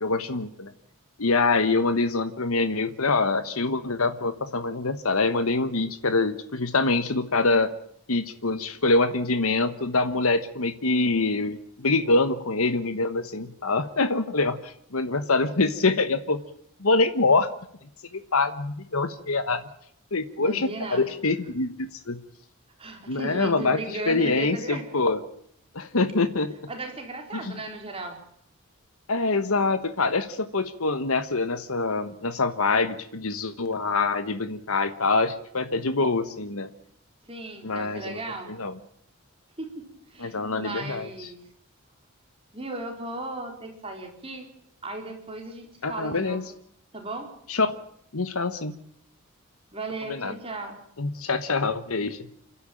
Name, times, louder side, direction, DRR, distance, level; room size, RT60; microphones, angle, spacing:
voice 1, 0.0-0.7 1.2-7.7 8.1-16.4 16.8-17.5 18.1-19.6 20.1-22.2 23.1-23.8 24.1-25.2 25.7-26.5 27.4-27.5 29.1-36.7 37.6-38.2 38.6-38.7 40.2-41.3 45.8-46.4 47.5-47.8 48.1-48.8 50.1-50.4 51.0-52.3, left 3 dB, 75° left, 10 dB, 1.3 m, -25 dB
voice 2, 20.4-21.1 22.8-24.8 26.7-28.2 37.2-38.5 39.6-41.4 42.5-44.5 44.8-46.4 46.9-47.3 49.7-50.8, right 2 dB, 25° right, 2 dB, 4.1 m, -36 dB
29.0 x 13.0 x 9.0 m, 0.71 s
head